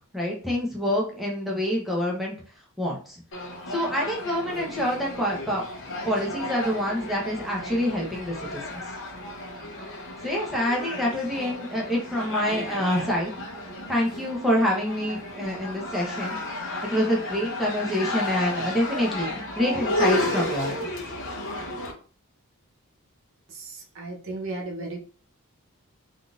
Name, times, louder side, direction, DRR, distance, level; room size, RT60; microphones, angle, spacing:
voice 1, 0.1-2.3 2.8-3.2 3.7-5.6 6.0-8.6 10.2-13.3 13.9-16.4 16.8-20.9, equal, ahead, -3 dB, 0.8 m, -26 dB
sound 1, 3.3-21.9, left 1 dB, 60° left, 0.7 m, -33 dB
voice 2, 23.5-25.0, right 2 dB, 65° right, 0 dB, 0.7 m, -35 dB
3.6 x 2.5 x 2.4 m, 0.41 s
head